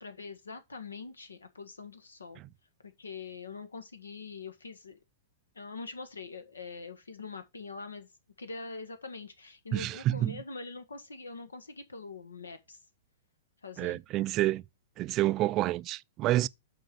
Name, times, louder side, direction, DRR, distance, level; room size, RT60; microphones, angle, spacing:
voice 1, 0.0-2.4 3.0-5.0 5.5-8.1 8.4-12.8 13.6-14.0, left 4 dB, 90° left, 1.5 m, -43 dB
voice 2, 9.7-10.4 13.8-14.6 15.0-16.5, right 15 dB, 35° right, 0.3 m, -28 dB
6.4 x 4.5 x 6.6 m
hypercardioid pair, 115°, 0 cm